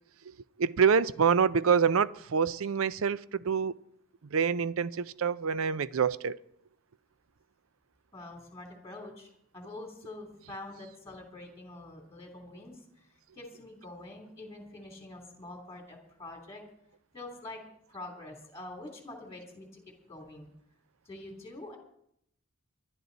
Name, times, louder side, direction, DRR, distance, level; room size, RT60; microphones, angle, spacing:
voice 1, 0.6-3.7 4.3-6.4, right 6 dB, 70° right, 0.5 m, -26 dB
voice 2, 8.1-16.6 17.1-17.6 17.9-20.5 21.0-21.8, left 2 dB, 15° left, 3.1 m, -46 dB
24.0 x 11.0 x 4.1 m
head